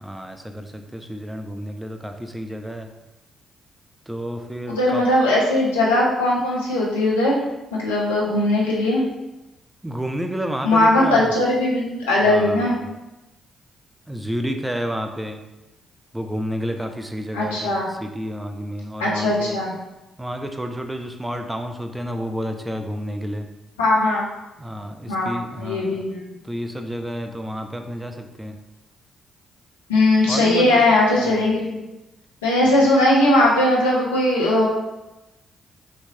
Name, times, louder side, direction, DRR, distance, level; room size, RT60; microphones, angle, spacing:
voice 1, 0.0-2.9 4.1-5.1 9.8-11.3 12.3-12.9 14.1-15.4 16.1-19.6 20.2-23.5 24.6-26.0 26.4-28.6 30.3-30.8, equal, 10° right, 5 dB, 0.6 m, -30 dB
voice 2, 4.7-7.4 7.7-9.0 10.6-12.8 17.3-17.9 19.0-19.7 23.8-24.2 25.1-26.4 29.9-31.8 32.4-34.7, left 1 dB, 85° left, -4 dB, 0.9 m, -19 dB
5.3 x 3.0 x 2.7 m, 0.99 s
hypercardioid pair, 40°, 0 cm